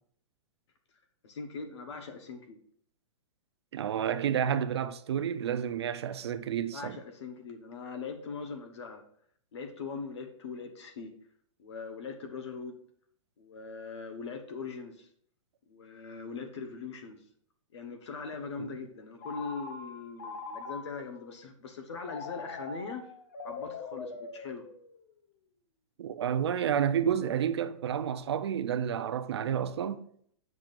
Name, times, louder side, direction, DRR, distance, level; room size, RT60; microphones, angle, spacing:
voice 1, 1.2-2.6 6.7-9.0 9.5-11.1 11.6-12.7 13.4-15.1 15.7-17.2 17.7-23.0 23.4-24.6, left 5 dB, 55° left, 1.0 m, -41 dB
voice 2, 3.7-7.0 18.6-18.8 26.0-30.1, right 9 dB, 50° right, 0.4 m, -30 dB
Telephone, 19.2-21.2 22.0-25.1, left 4 dB, 30° left, 0.5 m, -42 dB
8.9 x 6.0 x 2.5 m
hypercardioid pair, 180°, 17 cm